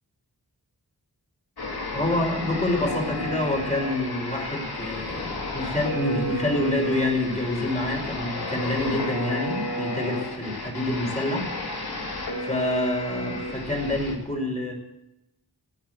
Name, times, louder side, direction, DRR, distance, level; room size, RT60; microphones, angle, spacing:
sound 1, 1.6-14.1, left 1 dB, 70° left, 3.2 m, -32 dB
voice 1, 1.9-11.5 11.8-11.9 12.4-14.7, left 1 dB, 15° left, 1 dB, 5.0 m, -27 dB
16.0 x 10.0 x 8.0 m, 0.90 s
wide cardioid pair, 70°, 39 cm